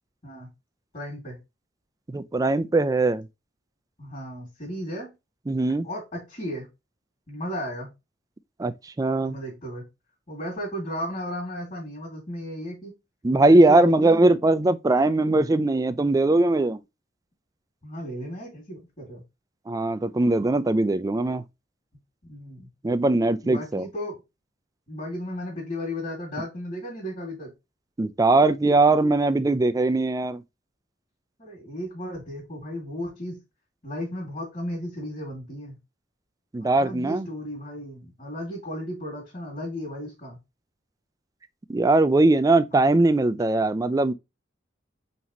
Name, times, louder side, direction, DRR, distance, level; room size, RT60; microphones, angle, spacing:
voice 1, 0.9-1.4 4.0-5.1 5.8-6.7 7.3-7.9 9.2-9.9 10.3-12.9 13.4-14.5 15.2-15.4 17.8-19.2 22.2-22.7 23.4-24.2 24.9-27.5 31.4-33.4 33.8-35.8 36.6-40.4 42.7-42.9, equal, 40° left, 2.2 m, -35 dB
voice 2, 2.1-3.3 5.5-5.9 8.6-8.7 9.0-9.4 13.2-16.8 19.7-21.4 22.8-23.9 28.0-30.4 36.5-37.3 41.7-44.1, right 2 dB, 20° right, 0.3 m, -20 dB
4.4 x 4.0 x 2.9 m
head